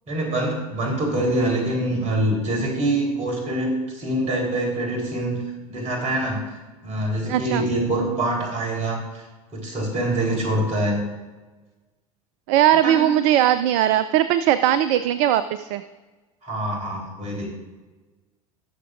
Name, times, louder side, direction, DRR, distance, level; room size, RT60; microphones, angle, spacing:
voice 1, 0.1-5.4 5.7-6.4 6.8-9.2 9.5-11.0 12.8-13.1 16.4-17.5, right 1 dB, 35° right, 0 dB, 3.7 m, -25 dB
voice 2, 7.3-7.6 12.5-15.8, right 11 dB, 55° right, 13 dB, 0.5 m, -19 dB
19.5 x 6.8 x 2.5 m, 1.2 s
figure-of-eight pair, 80°, 20 cm